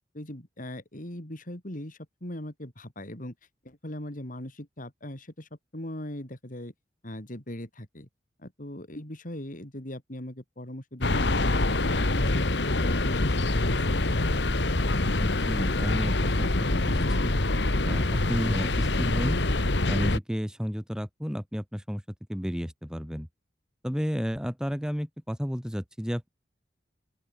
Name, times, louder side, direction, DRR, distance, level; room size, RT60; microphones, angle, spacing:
voice 1, 0.1-3.3 3.6-6.7 7.0-8.1 8.4-11.6 11.9-14.2, left 1 dB, 50° left, 3.9 m, -40 dB
sound 1, 11.0-20.2, left 2 dB, 70° left, 1.8 m, -25 dB
voice 2, 15.2-17.3 17.8-19.4 19.9-22.0 22.3-23.3 23.8-26.3, equal, 5° right, 4.8 m, -32 dB
open air
head